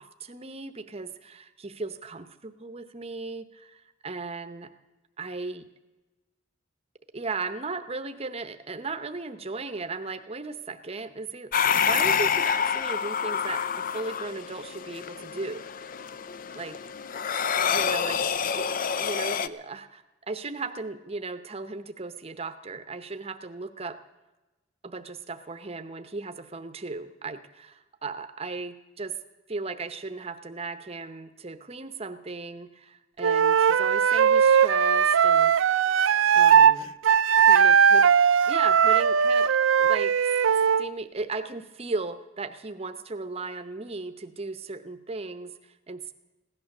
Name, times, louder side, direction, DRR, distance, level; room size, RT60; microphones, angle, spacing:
voice 1, 0.0-4.7 5.2-5.6 7.1-15.6 16.6-16.7 17.7-18.2 18.5-24.0 24.8-29.2 29.5-35.5 36.3-37.0 37.5-38.1 38.5-40.3 40.8-46.1, right 3 dB, 30° right, 10 dB, 0.8 m, -36 dB
sound 1, 11.5-19.5, left 7 dB, 45° left, 0.5 m, -27 dB
Wind instrument woodwind instrument, 33.2-36.8 37.0-40.9, right 7 dB, 75° right, 0.5 m, -19 dB
16.5 x 11.5 x 6.6 m, 1.1 s
head